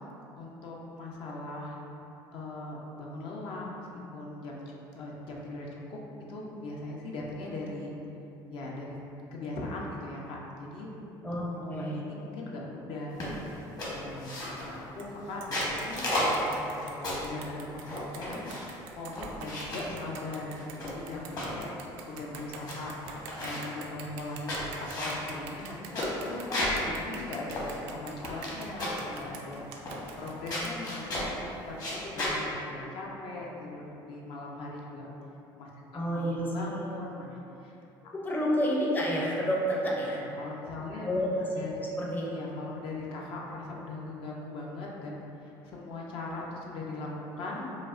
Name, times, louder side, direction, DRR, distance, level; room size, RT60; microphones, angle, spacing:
voice 1, 0.4-1.8 2.3-6.0 6.3-7.9 8.5-9.0 9.3-10.9 11.2-13.2 13.9-18.5 18.9-22.9 23.4-29.7 30.2-31.3 31.7-35.1 35.6-37.7 40.1-41.1 41.5-41.7 42.2-47.7, left 2 dB, 65° left, -3 dB, 0.6 m, -40 dB
voice 2, 11.2-12.0 35.9-36.8 38.1-40.3 41.0-42.3, equal, 20° left, -4 dB, 0.6 m, -30 dB
sound 1, 13.2-13.5 13.8-14.8 15.3-17.3 17.8-18.8 19.1-19.9 20.6-21.6 22.1-22.2 22.4-22.8 23.0-23.7 24.2-26.8 27.2-27.3 27.5-28.5 28.8-29.1 29.9-30.2 30.5-31.3 31.7-32.4, left 1 dB, 40° left, 1.0 m, -33 dB
sound 2, 15.0-15.1 15.4-31.2, right 6 dB, 75° right, 0.4 m, -46 dB
5.0 x 2.1 x 2.4 m, 2.9 s
cardioid pair, 105°, 10 cm